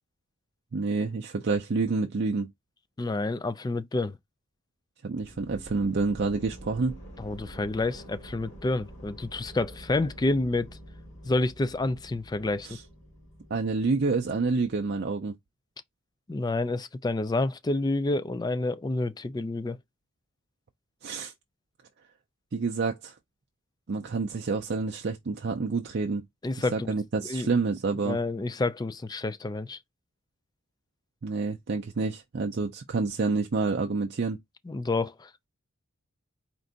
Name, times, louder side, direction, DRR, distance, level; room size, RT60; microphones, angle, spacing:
voice 1, 0.7-2.5 5.0-7.0 12.6-12.8 13.5-15.3 21.0-21.3 22.5-23.1 23.9-26.2 26.6-28.2 31.2-34.4, right 4 dB, 50° right, 0.5 m, -28 dB
voice 2, 3.0-4.2 7.2-10.7 11.2-12.8 16.3-19.8 26.4-26.9 27.3-27.5 28.0-29.8 34.7-35.3, left 2 dB, 20° left, 0.3 m, -29 dB
sound 1, 5.1-15.1, equal, 60° left, 2.5 m, -47 dB
4.4 x 2.5 x 3.8 m
head